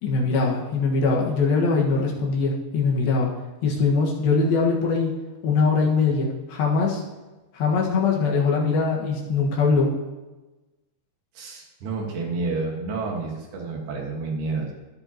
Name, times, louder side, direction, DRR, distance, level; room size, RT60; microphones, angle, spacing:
voice 1, 0.0-3.3 3.6-5.1 5.4-7.0 7.5-9.9, left 4 dB, 75° left, -2 dB, 3.3 m, -22 dB
voice 2, 11.4-14.7, right 3 dB, 90° right, 0 dB, 3.7 m, -29 dB
21.0 x 7.8 x 2.9 m, 1.2 s
omnidirectional pair, 4.4 m